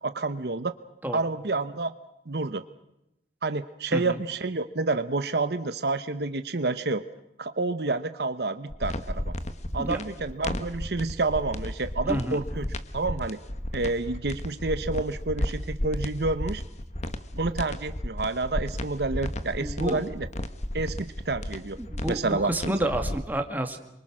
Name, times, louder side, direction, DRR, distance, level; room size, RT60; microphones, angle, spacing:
voice 1, 0.0-0.7 1.1-1.9 2.3-2.6 3.4-7.0 7.4-9.3 9.7-12.7 12.9-13.4 13.7-16.6 17.3-20.3 20.7-21.8 22.1-22.9, right 3 dB, 65° right, 11 dB, 0.9 m, -29 dB
sound 1, 8.7-23.2, left 1 dB, 40° left, 1.3 m, -33 dB
voice 2, 12.1-12.4 19.6-20.0 21.8-23.8, right 1 dB, 10° right, 5 dB, 2.2 m, -30 dB
28.0 x 24.5 x 6.3 m, 0.86 s
head